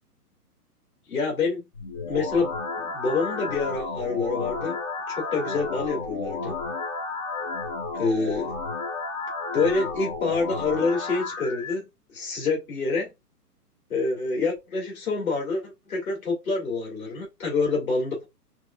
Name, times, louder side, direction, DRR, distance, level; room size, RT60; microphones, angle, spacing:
voice 1, 1.1-1.6 2.0-4.8 5.1-6.5 7.9-8.6 9.5-11.8 12.1-13.1 13.9-18.2, left 4 dB, 60° left, 2.5 m, -27 dB
sound 1, 1.7-11.7, left 3 dB, 25° left, 0.5 m, -32 dB
6.0 x 2.3 x 2.4 m
figure-of-eight pair, 120°, 47 cm